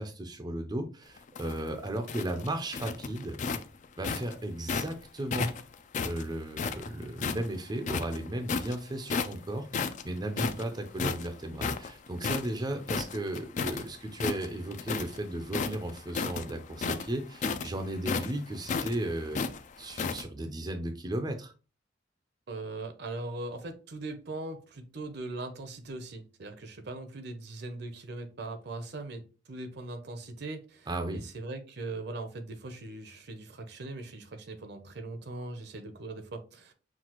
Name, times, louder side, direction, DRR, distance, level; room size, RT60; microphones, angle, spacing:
voice 1, 0.0-3.4 4.0-5.5 6.0-19.4 19.8-21.5 30.9-31.2, right 1 dB, 20° right, 5 dB, 0.5 m, -35 dB
sound 1, 1.2-4.9 5.3-7.5 7.8-8.7 9.1-9.4 9.7-13.8 14.1-15.2 15.5-20.2, left 5 dB, 40° left, 0.3 m, -33 dB
voice 2, 22.5-29.2 29.5-36.7, right 2 dB, 60° right, 8 dB, 0.7 m, -40 dB
5.9 x 2.4 x 2.9 m, 0.34 s
head